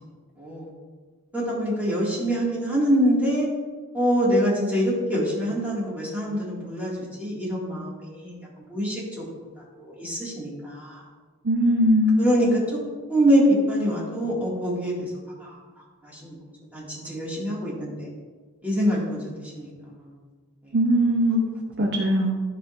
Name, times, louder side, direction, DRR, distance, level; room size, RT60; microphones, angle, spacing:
voice 1, 0.4-0.7 1.3-3.5 3.9-8.4 8.7-9.2 9.6-11.0 12.2-12.8 13.1-15.1 15.4-15.6 16.0-16.4 16.7-18.1 18.6-20.2 20.6-20.8 21.3-21.4 21.8-21.9, equal, 5° right, -7 dB, 2.1 m, -25 dB
voice 2, 11.4-12.2 20.7-21.4 21.8-22.4, equal, 50° right, 0 dB, 0.8 m, -20 dB
12.5 x 5.2 x 2.6 m, 1.4 s
head